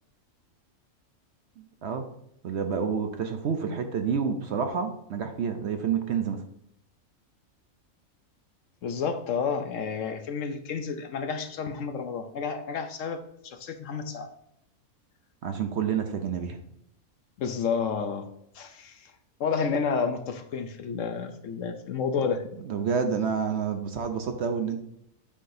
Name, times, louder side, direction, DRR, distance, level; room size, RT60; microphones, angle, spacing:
voice 1, 1.6-2.0 2.4-6.4 15.4-16.6 22.6-24.9, right 6 dB, 60° right, 6 dB, 0.8 m, -29 dB
voice 2, 8.8-13.2 13.4-14.3 17.4-18.2 18.5-19.1 19.4-22.4, left 6 dB, 65° left, 7 dB, 1.0 m, -30 dB
8.4 x 5.8 x 2.6 m, 0.76 s
omnidirectional pair, 1.5 m